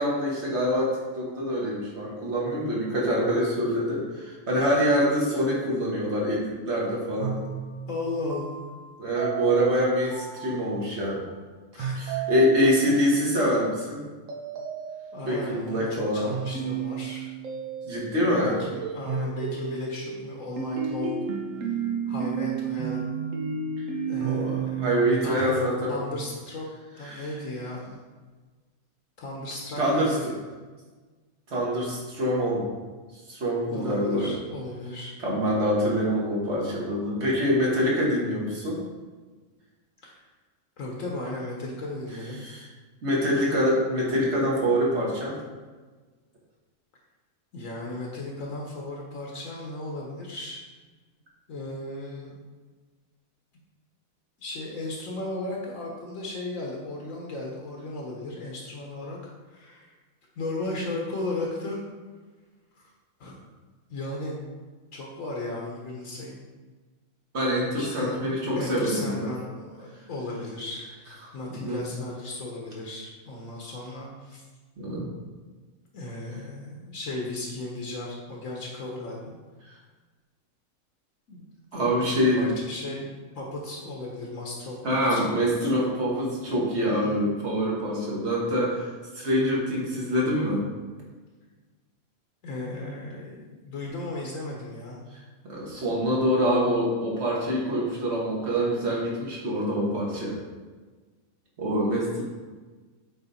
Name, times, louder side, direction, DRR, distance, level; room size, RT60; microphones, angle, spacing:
voice 1, 0.0-7.4 9.0-11.2 12.0-14.0 15.2-16.2 17.8-18.5 24.2-26.1 27.1-27.2 29.8-30.3 31.5-32.7 33.3-34.3 35.2-38.8 42.4-42.7 43.0-45.3 67.3-69.3 71.5-71.8 74.8-75.1 81.7-82.5 84.8-90.6 95.4-100.4 101.6-102.2, equal, 50° right, -4 dB, 1.9 m, -25 dB
sound 1, 7.2-11.1 11.8-13.3 14.3-15.5 16.3-18.2 18.5-25.5, right 6 dB, 70° right, 1.2 m, -32 dB
voice 2, 7.9-8.6 11.7-12.0 15.1-17.3 18.4-21.2 21.6-21.7 22.1-23.0 24.1-24.9 25.2-25.6 25.9-26.7 27.0-28.0 29.2-30.3 33.7-35.1 40.0-40.2 40.8-42.4 47.5-50.6 51.5-52.3 54.4-59.9 60.4-61.8 63.2-63.4 63.9-64.3 64.9-66.4 67.7-68.2 68.5-74.4 75.9-79.4 81.3-81.4 81.7-85.4 86.9-87.2 92.4-95.0, left 2 dB, 70° left, -2 dB, 1.3 m, -35 dB
8.0 x 3.6 x 4.2 m, 1.4 s
omnidirectional pair, 1.5 m